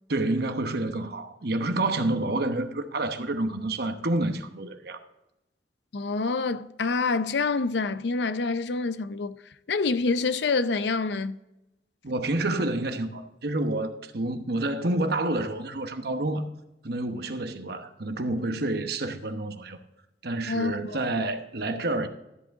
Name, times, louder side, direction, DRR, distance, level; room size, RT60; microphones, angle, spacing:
voice 1, 0.1-5.0 12.0-16.5 16.8-19.8 20.2-22.1, right 2 dB, 60° right, 1.0 m, -28 dB
voice 2, 5.9-9.4 9.7-11.4 20.5-21.0, left 4 dB, 70° left, 0.5 m, -27 dB
13.0 x 8.1 x 3.6 m
head